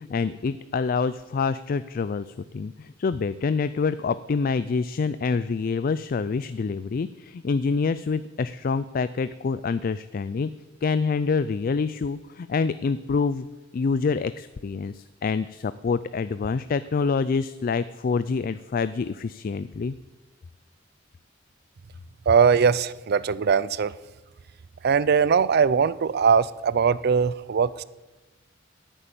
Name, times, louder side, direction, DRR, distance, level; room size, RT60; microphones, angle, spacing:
voice 1, 0.0-10.5 10.8-13.5 13.7-19.9, left 5 dB, 45° left, 14 dB, 0.4 m, -26 dB
voice 2, 22.3-24.0 24.8-27.8, right 6 dB, 55° right, 19 dB, 0.4 m, -21 dB
11.0 x 9.1 x 8.8 m, 1.2 s
head